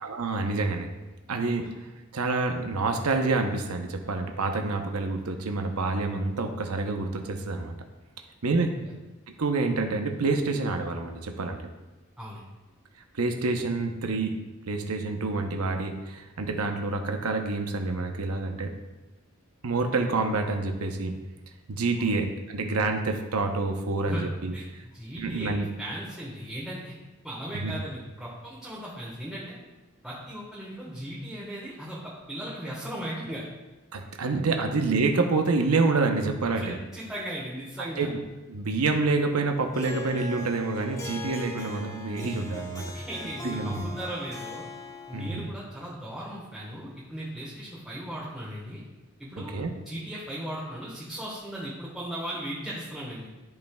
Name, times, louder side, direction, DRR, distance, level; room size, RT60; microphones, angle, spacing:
voice 1, 0.0-0.9 1.3-1.9 2.1-7.8 8.4-8.8 9.4-11.7 13.1-18.7 19.6-21.2 21.7-24.5 25.2-25.7 27.5-27.7 33.9-36.8 38.0-38.2 38.5-42.9 43.4-43.9 45.1-45.5 49.4-49.7, right 3 dB, 90° right, 4 dB, 0.8 m, -27 dB
voice 2, 24.5-25.5 25.8-26.9 27.2-29.6 30.0-33.5 36.6-38.1 42.9-44.7 45.1-48.8 49.2-49.5 49.8-53.3, right 1 dB, ahead, -8 dB, 1.3 m, -37 dB
Harp, 39.7-45.5, left 1 dB, 15° left, 0.9 m, -39 dB
13.0 x 5.4 x 2.3 m, 1.1 s
head